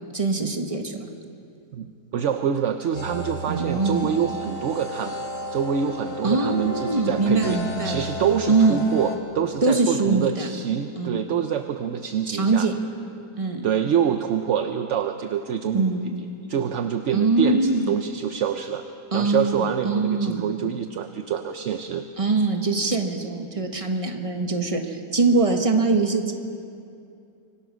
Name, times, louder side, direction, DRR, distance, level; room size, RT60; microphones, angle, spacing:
voice 1, 0.1-1.0 3.5-4.1 6.2-8.0 8.5-8.8 9.6-10.5 11.0-11.2 12.3-12.7 13.4-13.7 15.7-16.2 16.4-16.5 17.1-17.9 19.1-20.4 22.2-26.3, right 3 dB, 20° right, 4 dB, 1.4 m, -23 dB
voice 2, 1.7-5.2 5.5-12.7 13.6-15.9 16.5-18.8 19.1-22.0, right 8 dB, 60° right, 7 dB, 0.9 m, -26 dB
sound 1, 2.9-9.2, left 1 dB, 70° left, 2.1 m, -33 dB
25.5 x 17.0 x 6.2 m, 2.5 s
omnidirectional pair, 1.7 m